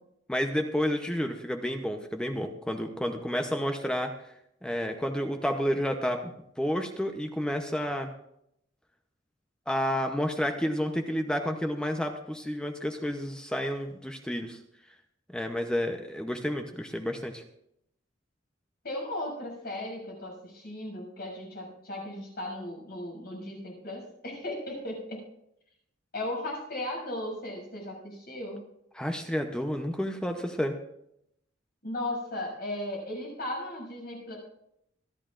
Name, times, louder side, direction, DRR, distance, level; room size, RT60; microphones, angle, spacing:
voice 1, 0.3-4.1 4.6-8.1 9.7-14.6 15.3-17.4 28.9-30.7, equal, 5° left, 4 dB, 0.7 m, -30 dB
voice 2, 18.8-25.2 26.1-28.6 31.8-34.4, left 1 dB, 50° left, -1 dB, 6.8 m, -36 dB
26.5 x 11.0 x 2.5 m, 0.77 s
head